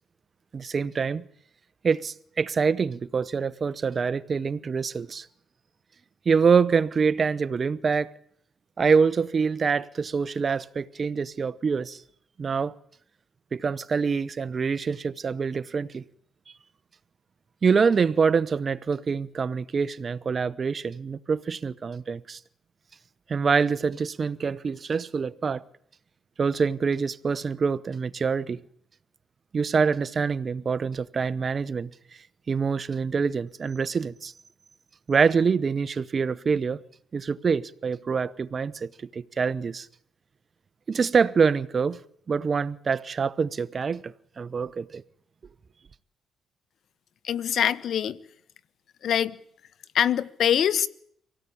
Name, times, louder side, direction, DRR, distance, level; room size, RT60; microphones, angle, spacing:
voice 1, 0.5-1.2 1.8-5.3 6.2-8.1 8.8-12.0 12.4-12.7 13.5-16.0 17.6-22.4 23.3-25.6 26.4-28.6 29.5-31.9 32.5-34.3 35.1-36.8 37.1-39.9 40.9-42.0 42.3-45.0, right 5 dB, 40° right, 1.0 m, -25 dB
voice 2, 47.2-48.2 49.0-49.3 49.9-50.9, left 9 dB, 65° left, 1.3 m, -24 dB
25.5 x 17.5 x 8.5 m
cardioid pair, 90°, 0 cm